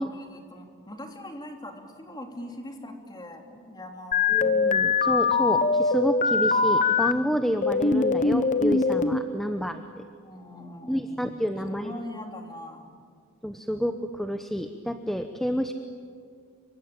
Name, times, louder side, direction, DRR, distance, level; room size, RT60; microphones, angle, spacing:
voice 1, 0.0-4.4 10.2-13.0, left 1 dB, 20° left, 3 dB, 3.0 m, -41 dB
sound 1, 4.1-7.1 7.6-9.2, left 4 dB, 35° left, 1.1 m, -22 dB
voice 2, 4.3-10.1 10.9-11.9 13.4-15.7, equal, ahead, 7 dB, 0.9 m, -29 dB
27.5 x 24.0 x 8.8 m, 2.2 s
head